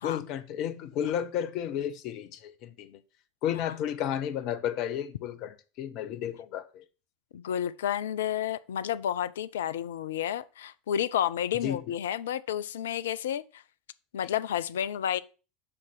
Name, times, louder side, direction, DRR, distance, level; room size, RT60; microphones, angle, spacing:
voice 1, 0.0-3.0 3.4-6.8 11.6-11.8, left 10 dB, 50° left, 0.9 m, -32 dB
voice 2, 7.3-13.6 14.1-15.2, left 10 dB, 70° left, 0.5 m, -31 dB
7.7 x 5.9 x 5.9 m
figure-of-eight pair, 75°, 0 cm